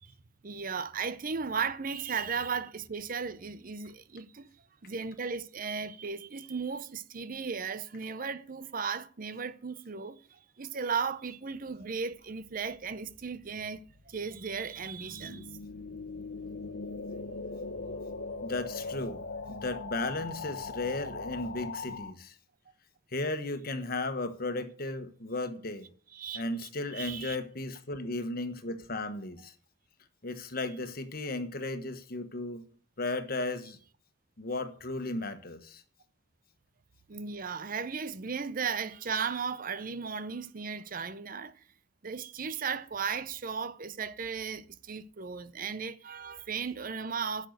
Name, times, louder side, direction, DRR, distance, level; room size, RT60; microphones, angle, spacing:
voice 1, 0.4-4.5 4.8-15.5 26.1-27.4 37.1-41.6 42.0-47.5, right 5 dB, 45° right, 0.7 m, -36 dB
sound 1, 12.8-22.1, left 3 dB, 85° left, 1.2 m, -40 dB
voice 2, 18.4-19.2 19.5-22.3 23.1-25.9 26.3-29.5 30.2-32.6 33.0-33.8 34.4-35.8, left 2 dB, 50° left, 1.3 m, -35 dB
10.5 x 6.6 x 8.0 m
head